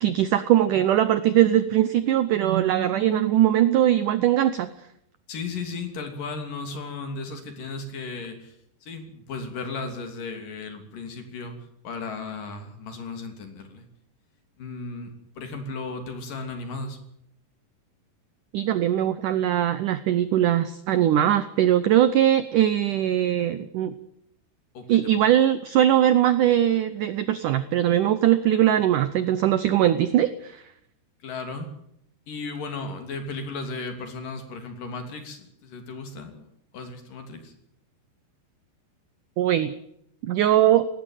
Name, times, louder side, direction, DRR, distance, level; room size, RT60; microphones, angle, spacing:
voice 1, 0.0-4.7 18.5-23.9 24.9-30.6 39.4-39.7 40.2-40.9, right 11 dB, 80° right, 13 dB, 1.8 m, -21 dB
voice 2, 5.3-8.6 8.8-11.6 11.8-13.9 14.6-17.0 24.7-25.2 31.2-31.7 32.3-36.5 36.7-37.5, left 3 dB, 55° left, 6 dB, 4.4 m, -35 dB
18.5 x 16.5 x 9.2 m, 0.74 s
omnidirectional pair, 5.0 m